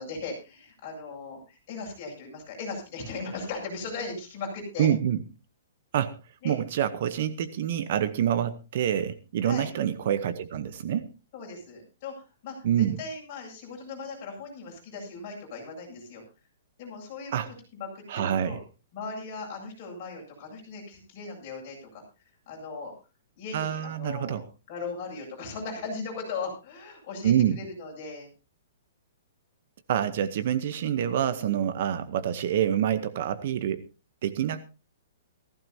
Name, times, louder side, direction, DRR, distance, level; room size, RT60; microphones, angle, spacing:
voice 1, 0.0-4.9 6.4-6.6 9.4-9.7 11.3-16.2 16.8-17.3 17.7-18.6 18.9-22.0 22.5-22.9 23.4-28.3, left 4 dB, 25° left, -1 dB, 8.0 m, -38 dB
voice 2, 4.8-5.2 5.9-6.2 6.4-11.1 12.6-13.0 17.3-17.5 18.1-18.6 23.5-24.4 27.2-27.6 29.9-33.8 34.2-34.6, right 10 dB, 40° right, 13 dB, 0.9 m, -26 dB
17.5 x 15.5 x 2.8 m, 0.30 s
hypercardioid pair, 175°, 0 cm